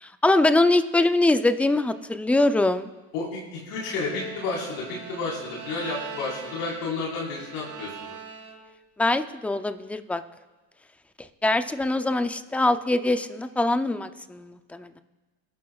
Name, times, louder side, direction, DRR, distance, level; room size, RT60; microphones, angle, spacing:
voice 1, 0.0-2.9 9.0-10.2 11.4-15.0, left 2 dB, 5° left, 10 dB, 0.4 m, -23 dB
voice 2, 3.1-8.1, left 3 dB, 85° left, -4 dB, 4.3 m, -31 dB
Bowed string instrument, 3.7-8.9, right 6 dB, 35° right, 1.7 m, -42 dB
22.0 x 11.5 x 2.4 m, 1.3 s
supercardioid pair, 110°, 48 cm